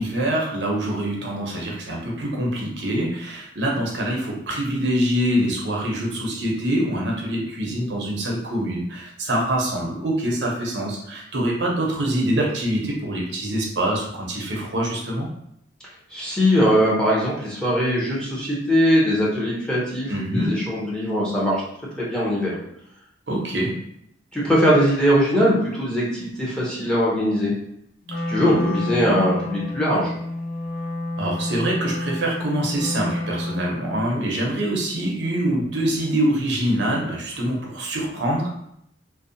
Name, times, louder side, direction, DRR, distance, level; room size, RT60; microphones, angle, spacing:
voice 1, 0.0-15.3 20.1-20.6 23.3-23.8 28.1-28.7 31.2-38.5, right 1 dB, 70° right, -1 dB, 0.6 m, -25 dB
voice 2, 16.1-21.6 22.0-22.5 24.3-27.5 28.3-30.1, equal, 5° left, -6 dB, 0.6 m, -21 dB
Wind instrument woodwind instrument, 28.1-34.1, left 1 dB, 45° left, 1.1 m, -29 dB
2.5 x 2.0 x 2.6 m, 0.75 s
head